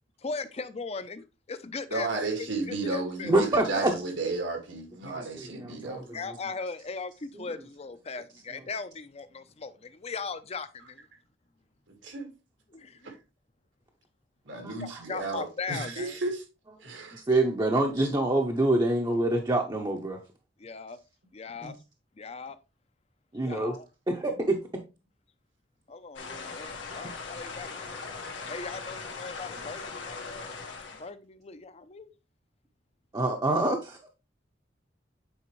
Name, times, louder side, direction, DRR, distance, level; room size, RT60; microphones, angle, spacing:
voice 1, 0.2-2.1 2.7-3.3 6.1-11.1 12.7-13.0 14.8-16.2 20.6-21.0 21.3-21.7 22.2-22.6 23.4-23.8 25.9-30.6 30.9-32.1, left 4 dB, 35° left, 0.6 m, -39 dB
voice 2, 1.9-6.1 11.9-12.3 13.0-13.1 14.5-16.4 16.8-17.2 26.3-26.4, right 3 dB, 85° right, 1.9 m, -33 dB
voice 3, 3.3-3.9 5.0-6.4 7.3-7.4 14.6-15.0 17.1-20.2 21.6-21.7 23.3-23.8 24.1-24.8 27.0-27.1 33.1-34.1, right 2 dB, 25° right, 0.7 m, -27 dB
sound 1, 26.1-31.1, left 4 dB, 90° left, 1.6 m, -40 dB
8.6 x 4.2 x 3.1 m
head